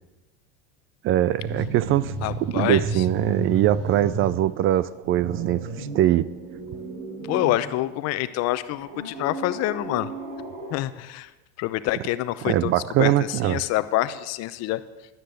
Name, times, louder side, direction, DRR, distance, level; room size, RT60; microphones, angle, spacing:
voice 1, 1.0-2.1 2.4-6.3 12.4-13.6, right 13 dB, 40° right, 18 dB, 0.5 m, -22 dB
sound 1, 1.4-4.5 4.8-7.9 8.7-10.7, right 3 dB, 70° right, 5.6 m, -34 dB
voice 2, 2.2-2.8 7.3-10.1 10.7-11.3 11.6-12.7 13.0-14.8, left 15 dB, 50° left, 14 dB, 0.8 m, -26 dB
12.0 x 9.9 x 7.9 m, 1.1 s
supercardioid pair, 115°, 33 cm